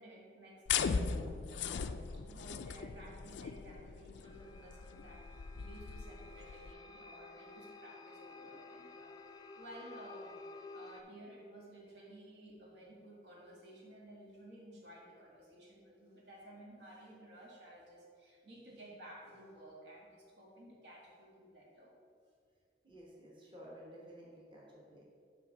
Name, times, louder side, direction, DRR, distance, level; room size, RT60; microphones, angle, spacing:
voice 1, 0.0-10.4 10.7-21.9, right 1 dB, 75° right, -3 dB, 1.7 m, -55 dB
sound 1, 0.7-6.7, left 6 dB, 90° left, 0.4 m, -38 dB
sound 2, 4.2-11.0, left 3 dB, 25° left, 0.4 m, -53 dB
voice 2, 22.8-25.1, equal, 30° right, -5 dB, 1.2 m, -53 dB
8.0 x 3.5 x 6.0 m, 2.2 s
head